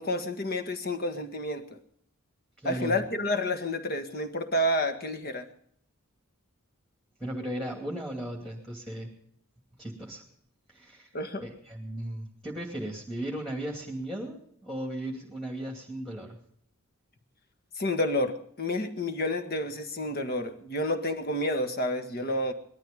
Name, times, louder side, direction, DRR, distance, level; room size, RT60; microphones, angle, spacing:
voice 1, 0.0-1.8 2.6-5.4 11.1-11.4 17.8-22.5, left 1 dB, 45° left, 8 dB, 1.7 m, -30 dB
voice 2, 2.6-3.0 7.2-9.1 9.8-10.2 10.7-11.1 11.4-16.4, right 1 dB, ahead, 0 dB, 2.5 m, -36 dB
19.5 x 13.0 x 5.3 m, 0.64 s
head